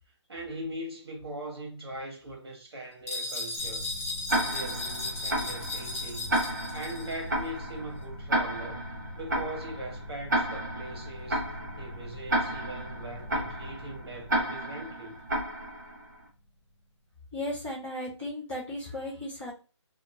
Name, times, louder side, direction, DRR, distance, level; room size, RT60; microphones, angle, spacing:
voice 1, 0.3-3.9 4.3-6.3 6.7-8.8 9.2-11.4 11.8-15.2, right 1 dB, 55° right, 1.4 m, -40 dB
sound 1, 3.1-7.2, left 2 dB, 30° left, 0.9 m, -36 dB
sound 2, 3.6-16.8, left 1 dB, 75° left, 0.9 m, -43 dB
Tick-tock, 4.3-16.1, right 1 dB, 35° right, 0.8 m, -32 dB
voice 2, 17.3-19.5, left 1 dB, 5° right, 0.4 m, -35 dB
2.6 x 2.5 x 3.0 m
hypercardioid pair, 175°, 16 cm